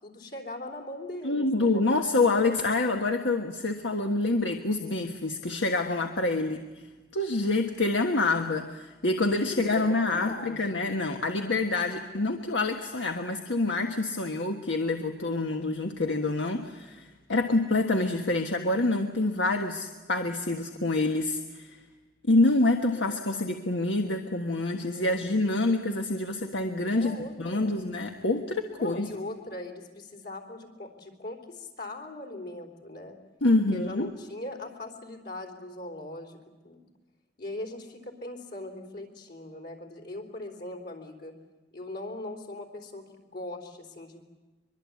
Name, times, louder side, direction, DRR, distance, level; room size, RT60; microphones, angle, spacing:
voice 1, 0.0-1.8 9.3-10.8 22.9-23.5 25.1-25.3 25.7-25.8 26.9-27.8 28.8-33.2 33.7-36.4 36.6-36.9 37.4-41.3 41.7-44.2, left 1 dB, 65° left, 2 dB, 3.8 m, -40 dB
voice 2, 1.2-6.6 7.1-21.8 22.3-29.1 33.4-34.1, left 2 dB, 90° left, 4 dB, 1.5 m, -27 dB
24.0 x 23.5 x 8.5 m, 1.2 s
head